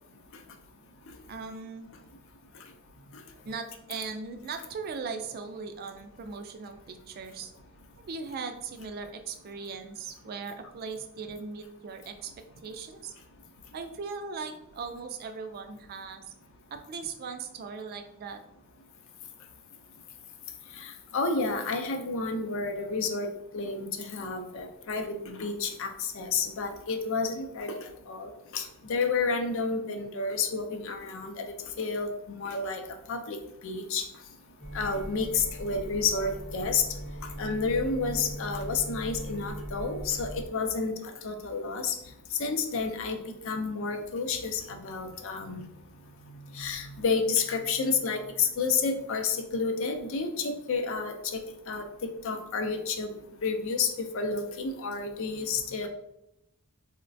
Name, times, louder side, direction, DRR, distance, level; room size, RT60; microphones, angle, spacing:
voice 1, 1.3-1.9 3.5-7.5 8.0-12.3 12.6-13.1 13.7-16.2 16.7-18.4, right 5 dB, 45° right, 7 dB, 0.3 m, -39 dB
voice 2, 20.7-23.3 23.5-27.8 28.1-31.4 31.8-32.8 33.1-33.4 33.6-34.0 34.7-36.8 37.4-41.9 42.3-45.7 46.5-51.4 51.7-53.1 53.4-55.9, left 4 dB, 60° left, 5 dB, 0.4 m, -30 dB
sound 1, 34.6-40.4, equal, 35° left, 0.8 m, -39 dB
3.8 x 2.1 x 2.6 m, 0.83 s
head